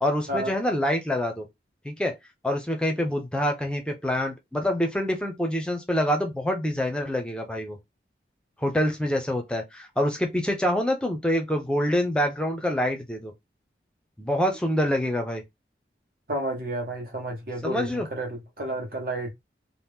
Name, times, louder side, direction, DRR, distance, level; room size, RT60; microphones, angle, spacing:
voice 1, 0.0-1.5 1.8-2.1 2.4-7.8 8.6-13.3 14.2-15.4 17.6-18.1, equal, 5° left, 0.5 m, -26 dB
voice 2, 16.3-19.3, right 1 dB, 55° right, 0.9 m, -31 dB
2.9 x 2.1 x 3.5 m
head